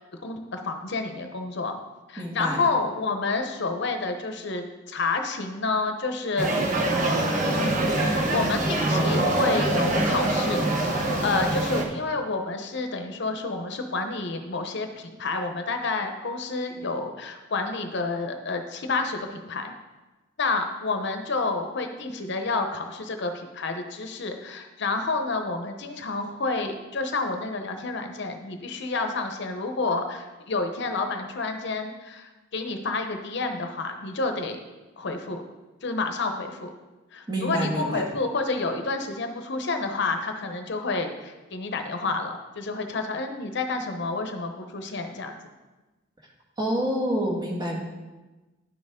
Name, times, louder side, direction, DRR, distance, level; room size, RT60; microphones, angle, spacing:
voice 1, 0.2-1.8 2.1-6.6 7.4-19.7 20.4-34.6 35.0-35.4 35.8-36.7 37.1-45.4, left 3 dB, 60° left, 5 dB, 0.8 m, -29 dB
voice 2, 2.2-2.6 37.3-38.0 46.6-47.8, equal, 20° right, -2 dB, 1.6 m, -27 dB
sound 1, 6.4-11.8, right 1 dB, 40° right, 1.1 m, -24 dB
10.0 x 6.7 x 3.6 m, 1.2 s
head